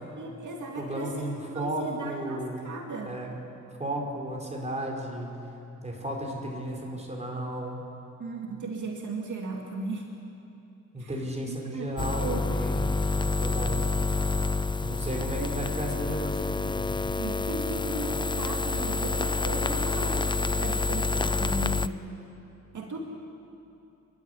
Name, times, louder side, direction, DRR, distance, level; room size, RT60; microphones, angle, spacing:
voice 1, 0.2-3.1 8.2-10.1 11.0-11.9 12.2-12.4 15.4-15.5 17.2-22.0 22.7-23.0, right 2 dB, 70° right, 0 dB, 2.5 m, -36 dB
voice 2, 0.7-2.6 3.0-3.4 3.8-5.3 5.8-7.8 10.9-13.9 14.8-16.9, right 1 dB, 20° right, -1 dB, 4.9 m, -34 dB
sound 1, 12.0-21.9, left 3 dB, 15° left, 0.5 m, -28 dB
28.5 x 12.5 x 9.9 m, 2.8 s
cardioid pair, 90°, 31 cm